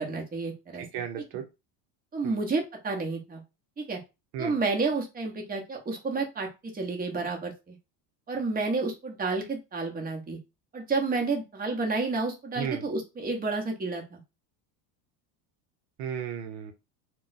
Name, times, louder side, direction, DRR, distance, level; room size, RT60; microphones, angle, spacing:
voice 1, 0.0-0.9 2.1-3.4 3.8-4.0 4.4-7.8 8.3-10.4 10.7-14.2, right 3 dB, 20° right, 1 dB, 0.9 m, -30 dB
voice 2, 0.7-1.5 2.2-2.4 4.3-4.6 12.5-12.8 16.0-16.7, right 8 dB, 70° right, 6 dB, 0.7 m, -34 dB
2.2 x 2.2 x 3.9 m, 0.26 s
supercardioid pair, 95°, 49 cm